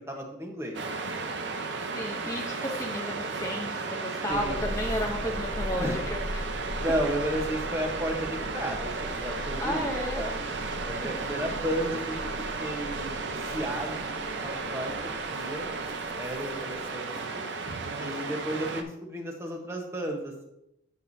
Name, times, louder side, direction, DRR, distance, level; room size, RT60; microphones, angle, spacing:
voice 1, 0.1-0.8 4.3-4.6 5.8-6.0 6.6-9.9 10.1-10.5 10.8-12.2 12.6-14.0 14.4-15.7 16.2-17.4 18.0-20.4, right 1 dB, 15° right, 2 dB, 1.0 m, -33 dB
Waves surf, 0.7-18.8, right 3 dB, 60° right, 0.7 m, -34 dB
voice 2, 1.9-6.4 9.6-10.2, equal, 15° left, 0 dB, 0.7 m, -33 dB
sound 1, 4.3-16.8, equal, 60° left, 1.5 m, -40 dB
9.8 x 6.7 x 2.7 m, 0.82 s
head